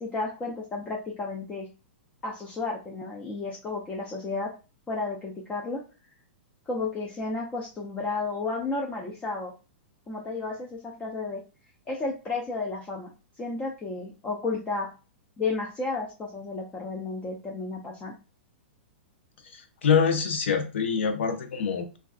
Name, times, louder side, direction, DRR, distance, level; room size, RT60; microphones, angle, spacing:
voice 1, 0.0-1.7 2.2-4.5 4.9-5.8 6.7-9.5 10.1-11.4 11.9-13.1 13.4-14.9 15.4-18.1, left 3 dB, 15° left, -1 dB, 0.4 m, -32 dB
voice 2, 19.5-22.0, left 6 dB, 80° left, 7 dB, 0.5 m, -25 dB
2.4 x 2.3 x 2.3 m, 0.33 s
hypercardioid pair, 135°, 6 cm